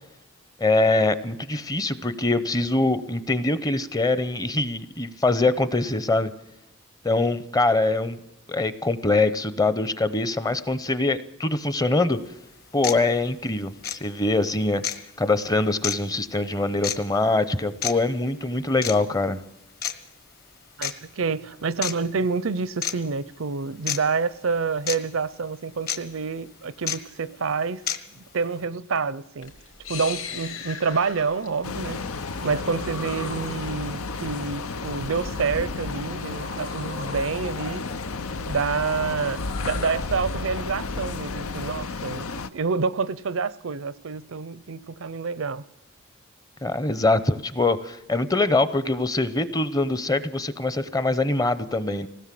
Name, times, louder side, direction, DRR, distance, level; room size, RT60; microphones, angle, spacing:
voice 1, 0.6-6.3 7.0-8.2 8.5-12.2 12.7-14.8 15.2-19.4 46.6-52.1, left 2 dB, 15° left, 0.7 m, -23 dB
sound 1, 12.1-12.2 12.8-13.0 13.8-14.0 14.8-15.0 15.8-16.0 16.8-17.0 17.8-17.9 18.8-19.0 19.8-19.9 20.8-20.9 21.8-22.0 22.8-22.9 23.9-24.0 24.9-25.0 25.9-26.0 26.9-27.0 27.9-28.0, left 8 dB, 45° left, 1.5 m, -27 dB
voice 2, 20.8-27.8 28.1-29.5 29.9-32.0 32.4-37.8 38.5-45.6, right 5 dB, 70° right, 0.6 m, -28 dB
sound 2, 29.4-40.4, left 5 dB, 70° left, 3.0 m, -40 dB
sound 3, 31.6-42.5, left 3 dB, 90° left, 0.8 m, -32 dB
20.5 x 17.0 x 7.6 m
head